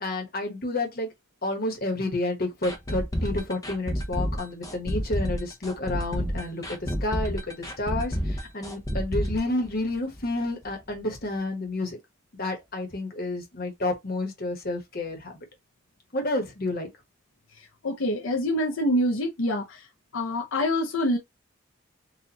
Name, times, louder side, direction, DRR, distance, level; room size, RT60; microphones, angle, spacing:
voice 1, 0.0-1.1 1.4-12.0 12.3-15.4 16.1-16.9, left 2 dB, 50° left, 1.2 m, -30 dB
sound 1, 2.6-10.4 10.6-10.7 11.1-11.2, equal, 15° left, 0.6 m, -30 dB
voice 2, 17.8-19.8 20.1-21.2, left 1 dB, 80° left, 0.7 m, -25 dB
4.2 x 2.4 x 2.9 m
head